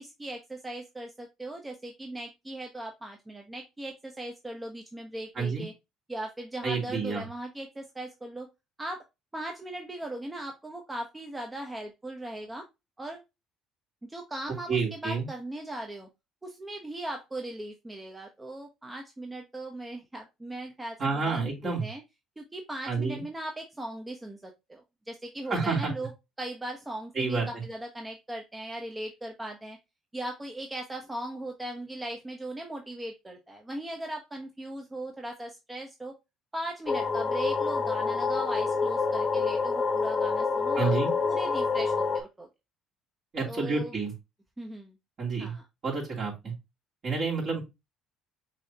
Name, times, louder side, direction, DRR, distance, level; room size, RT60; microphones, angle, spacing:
voice 1, 0.0-5.7 6.1-8.5 8.8-9.0 9.3-12.7 13.0-13.2 14.1-16.1 16.4-22.0 22.4-26.1 26.4-29.8 30.1-36.1 36.5-40.9 41.2-42.5 43.5-43.9 44.6-44.9 45.4-45.7, right 1 dB, 15° right, 3 dB, 0.8 m, -38 dB
voice 2, 6.6-7.2 14.7-15.3 21.0-21.9 22.9-23.2 25.5-25.9 27.1-27.5 40.8-41.1 43.3-44.1 45.2-45.5 45.8-46.5 47.0-47.6, right 4 dB, 50° right, -4 dB, 2.8 m, -29 dB
sound 1, 36.9-42.2, left 4 dB, 30° left, 0.9 m, -27 dB
6.2 x 2.8 x 2.8 m, 0.23 s
supercardioid pair, 80°, 0 cm